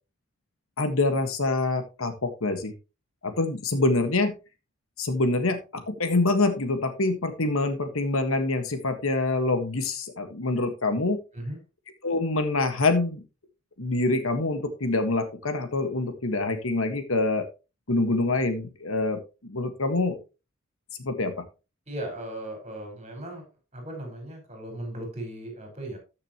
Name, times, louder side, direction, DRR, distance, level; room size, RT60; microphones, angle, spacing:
voice 1, 0.8-2.7 3.2-4.3 5.0-11.2 12.0-13.2 13.8-17.4 17.9-20.2 21.0-21.4, left 2 dB, 80° left, 8 dB, 1.6 m, -26 dB
voice 2, 21.9-23.5 23.7-26.0, right 1 dB, 30° right, 2 dB, 5.2 m, -37 dB
13.5 x 6.7 x 3.0 m, 0.29 s
head